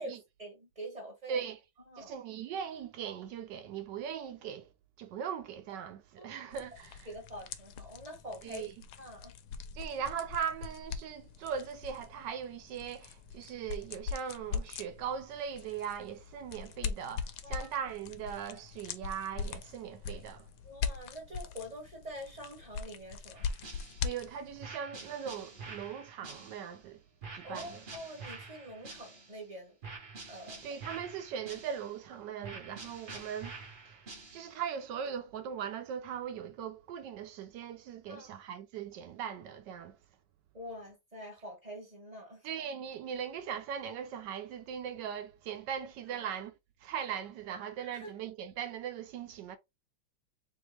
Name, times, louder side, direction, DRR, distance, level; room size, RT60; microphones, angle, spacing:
voice 1, 0.4-1.4 1.9-2.1 6.2-6.3 7.1-8.7 9.0-9.3 17.4-17.7 20.6-23.5 27.4-29.8 30.3-30.6 38.1-38.3 40.5-42.5 46.1-46.2 47.8-48.1, equal, 25° right, 1.0 m, -45 dB
voice 2, 1.3-1.6 2.0-4.7 5.0-7.1 8.4-8.7 9.7-20.5 24.0-27.0 27.3-27.8 30.6-33.6 33.9-34.0 34.3-40.0 42.4-46.5 46.8-49.6, right 8 dB, 75° right, 1.0 m, -39 dB
sound 1, 6.5-24.6, left 6 dB, 75° left, 1.3 m, -41 dB
sound 2, 23.4-24.2 24.6-26.8 27.2-29.4 29.8-32.0 32.4-34.7, right 4 dB, 55° right, 0.5 m, -48 dB
3.6 x 3.4 x 3.1 m
omnidirectional pair, 2.4 m